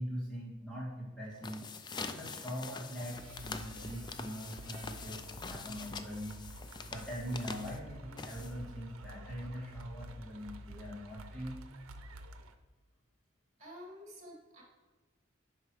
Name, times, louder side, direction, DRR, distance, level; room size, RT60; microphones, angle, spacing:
voice 1, 0.0-6.4 6.8-11.6, equal, 5° left, -7 dB, 2.1 m, -42 dB
sound 1, 1.3-8.8, left 4 dB, 20° left, 0.3 m, -45 dB
sound 2, 3.1-12.5, right 1 dB, 85° right, 0.6 m, -50 dB
voice 2, 13.6-14.6, equal, 35° right, -3 dB, 2.4 m, -50 dB
8.4 x 5.5 x 3.2 m, 1.3 s
head